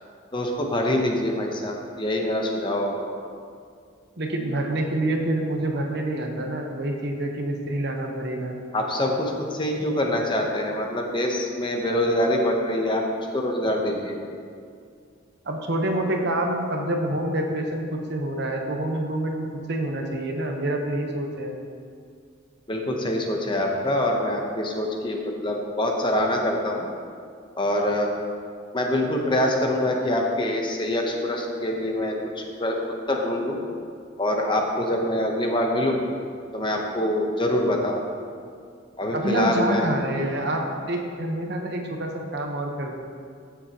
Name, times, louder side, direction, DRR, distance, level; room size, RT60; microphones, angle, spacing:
voice 1, 0.3-3.1 8.7-13.0 13.3-14.2 22.7-26.9 27.6-28.1 28.7-32.8 33.1-33.6 34.2-36.0 36.5-38.0 39.0-39.9, left 1 dB, 25° left, 1 dB, 0.9 m, -25 dB
voice 2, 4.2-8.6 15.4-21.5 39.1-43.0, right 1 dB, 55° right, 2 dB, 1.1 m, -27 dB
15.5 x 7.1 x 3.0 m, 2.2 s
head